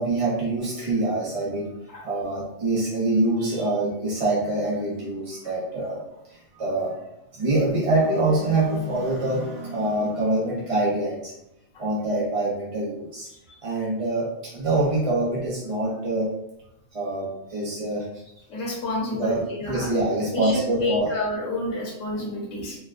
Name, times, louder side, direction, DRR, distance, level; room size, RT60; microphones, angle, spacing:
voice 1, 0.0-1.7 2.0-6.0 6.3-7.0 7.3-11.3 11.8-13.3 13.6-16.3 16.9-18.1 19.1-19.4 19.7-21.1, right 2 dB, 50° right, -5 dB, 0.4 m, -25 dB
voice 2, 18.5-19.9 20.3-22.8, left 1 dB, 75° left, -3 dB, 1.3 m, -29 dB
4.3 x 2.1 x 2.4 m, 0.85 s
omnidirectional pair, 1.4 m